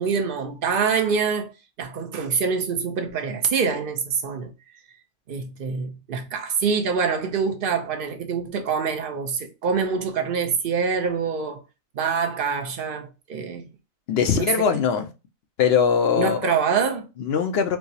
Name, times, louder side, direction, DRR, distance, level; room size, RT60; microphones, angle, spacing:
voice 1, 0.0-1.5 1.8-4.5 5.3-11.6 11.9-13.7 14.3-14.5 16.1-17.1, right 6 dB, 50° right, 0.7 m, -25 dB
voice 2, 14.1-15.1 15.6-16.5 17.2-17.8, left 7 dB, 65° left, 0.7 m, -21 dB
4.5 x 2.0 x 2.7 m
omnidirectional pair, 1.4 m